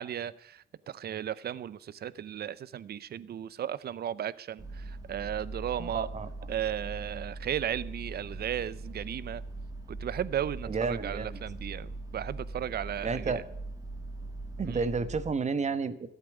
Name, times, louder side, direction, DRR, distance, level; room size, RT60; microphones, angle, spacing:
voice 1, 0.0-6.1 6.5-9.4 9.9-13.4 14.6-14.9, right 10 dB, 55° right, 0.6 m, -35 dB
sound 1, 4.6-15.3, right 2 dB, 20° right, 1.6 m, -41 dB
voice 2, 5.8-6.3 10.7-11.4 13.0-13.4 14.6-16.1, right 4 dB, 35° right, 1.1 m, -31 dB
14.0 x 8.3 x 8.2 m
cardioid pair, 90°, 20 cm